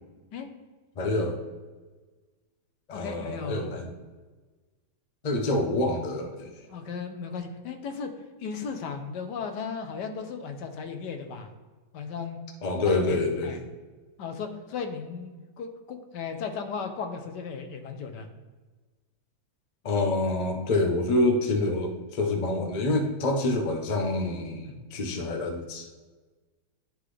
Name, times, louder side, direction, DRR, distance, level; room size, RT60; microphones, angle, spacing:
voice 1, 1.0-1.4 2.9-3.9 5.2-6.5 12.6-13.5 19.8-25.9, left 2 dB, 40° left, 4 dB, 0.5 m, -27 dB
voice 2, 2.9-3.7 6.7-8.1 8.4-11.5 11.9-12.4 12.8-13.6 14.2-18.3 24.6-24.8, left 5 dB, 85° left, 6 dB, 1.4 m, -36 dB
11.5 x 3.9 x 3.2 m, 1.3 s
omnidirectional pair, 1.8 m